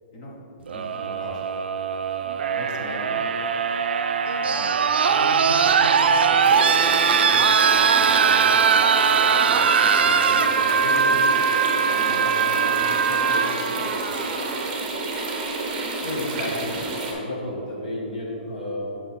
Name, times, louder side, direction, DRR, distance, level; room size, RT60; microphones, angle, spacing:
voice 1, 0.6-1.4 2.5-3.2 4.4-8.7 9.2-11.3 11.9-14.0, equal, 30° left, -2 dB, 0.9 m, -38 dB
sound 1, 0.7-14.7 15.9-16.0, right 6 dB, 85° right, 0.4 m, -21 dB
sound 2, 6.4-17.1, right 2 dB, 20° right, 0.8 m, -30 dB
voice 2, 16.0-18.9, left 1 dB, 55° left, -2 dB, 1.4 m, -31 dB
6.1 x 6.0 x 4.2 m, 3.0 s
hypercardioid pair, 180°, 6 cm